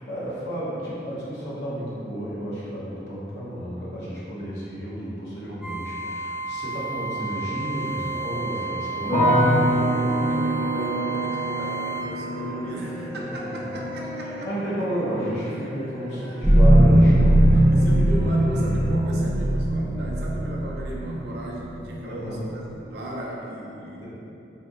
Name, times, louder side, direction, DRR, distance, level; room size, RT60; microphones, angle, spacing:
voice 1, 0.1-9.4 12.7-12.8 13.1-14.0 14.4-17.9 22.0-22.5, equal, 65° left, -8 dB, 1.0 m, -32 dB
voice 2, 1.1-1.6 8.9-14.5 16.0-17.0 17.7-24.1, equal, 60° right, -3 dB, 0.5 m, -36 dB
sound 1, 5.6-12.0 16.4-22.4, right 1 dB, 5° right, 0.4 m, -22 dB
sound 2, 7.4-18.8, right 1 dB, 35° right, 0.8 m, -43 dB
sound 3, 9.1-20.2 20.4-21.2, equal, 30° left, 0.9 m, -28 dB
4.3 x 2.9 x 2.5 m, 2.9 s
head